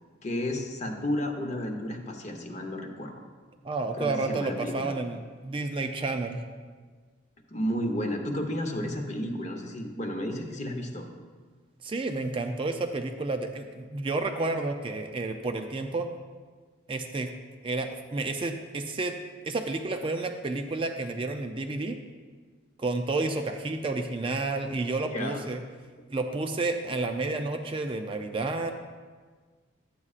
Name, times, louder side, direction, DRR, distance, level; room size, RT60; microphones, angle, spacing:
voice 1, 0.2-3.2 4.0-4.9 7.5-11.1 25.1-25.4, left 1 dB, 35° left, 3 dB, 0.8 m, -32 dB
voice 2, 3.6-5.2 5.4-6.4 11.8-16.1 16.9-17.3 17.6-19.1 19.4-22.0 22.8-25.6 26.1-28.7, right 3 dB, 25° right, 5 dB, 0.4 m, -30 dB
11.0 x 8.4 x 2.4 m, 1.5 s
head